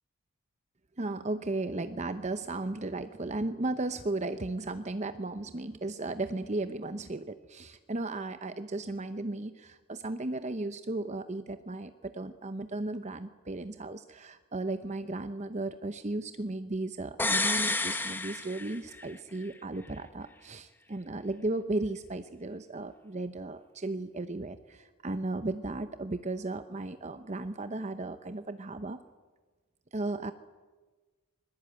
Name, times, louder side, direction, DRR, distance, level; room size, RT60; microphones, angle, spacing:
voice 1, 1.0-29.0 29.9-30.3, right 2 dB, 30° right, 10 dB, 0.8 m, -35 dB
sound 1, 17.2-19.1 19.4-19.5, left 2 dB, 10° left, 1.4 m, -30 dB
25.0 x 21.0 x 9.0 m, 1.3 s
head